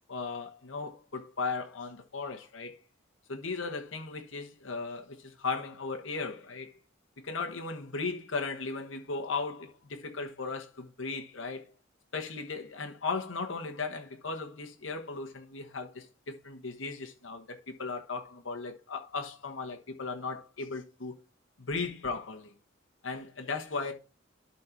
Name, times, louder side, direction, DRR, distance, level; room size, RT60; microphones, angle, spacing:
voice 1, 0.1-2.8 3.3-6.8 7.2-11.6 12.1-21.1 21.6-22.5 23.0-23.9, left 4 dB, 85° left, 1.3 m, -37 dB
12.0 x 4.3 x 4.5 m
head